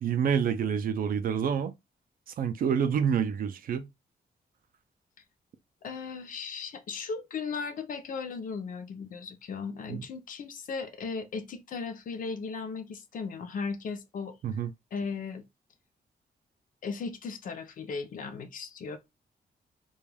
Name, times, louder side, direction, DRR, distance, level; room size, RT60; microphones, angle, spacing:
voice 1, 0.0-1.7 2.4-3.9 9.9-10.0 14.4-14.7, right 7 dB, 60° right, 0.4 m, -27 dB
voice 2, 5.8-14.4 14.9-15.4 16.8-19.0, left 5 dB, 55° left, 0.5 m, -36 dB
2.3 x 2.2 x 3.2 m
wide cardioid pair, 175°, 17 cm